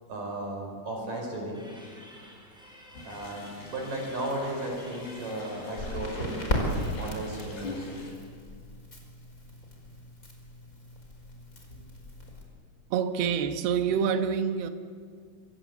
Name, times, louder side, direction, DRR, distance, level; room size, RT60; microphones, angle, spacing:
voice 1, 0.1-1.7 3.0-6.7 7.0-8.0, right 1 dB, 55° right, 6.8 m, -35 dB
sound 1, 1.5-7.9, equal, ahead, 6.7 m, -52 dB
sound 2, 2.9-8.1, left 2 dB, 85° left, 7.5 m, -45 dB
Crackle, 5.7-12.4, left 1 dB, 20° left, 4.9 m, -36 dB
voice 2, 12.9-14.7, right 7 dB, 80° right, 3.2 m, -26 dB
26.5 x 26.5 x 8.3 m
omnidirectional pair, 4.5 m